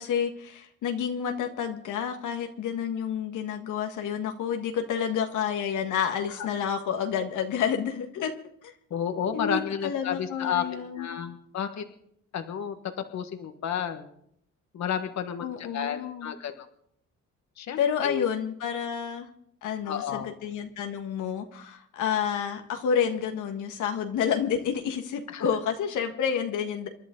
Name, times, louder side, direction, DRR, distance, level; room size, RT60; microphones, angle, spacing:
voice 1, 0.0-8.3 8.6-8.7 9.3-11.2 15.4-16.4 17.8-19.3 19.6-26.9, left 7 dB, 80° left, 5 dB, 1.6 m, -29 dB
voice 2, 8.9-11.8 12.3-12.8 13.1-14.1 14.7-16.5 17.6-18.2 19.8-20.3 25.3-25.5, left 8 dB, 65° left, 7 dB, 1.6 m, -31 dB
28.0 x 11.0 x 3.9 m, 0.70 s
cardioid pair, 90°, 30 cm